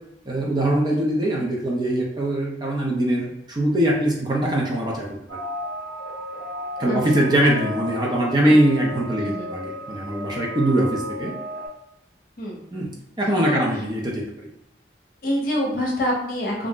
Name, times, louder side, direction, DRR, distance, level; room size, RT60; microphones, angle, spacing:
voice 1, 0.3-5.2 6.8-11.3 12.7-12.9 13.2-14.5, right 1 dB, 25° right, -2 dB, 0.4 m, -22 dB
sound 1, 5.3-11.7, equal, 70° right, 1.2 m, -34 dB
voice 2, 6.9-7.2 8.5-8.6 9.2-9.5 12.4-12.6 13.5-13.7 15.2-16.7, equal, 50° left, -1 dB, 0.7 m, -26 dB
2.5 x 2.0 x 3.6 m, 0.80 s
head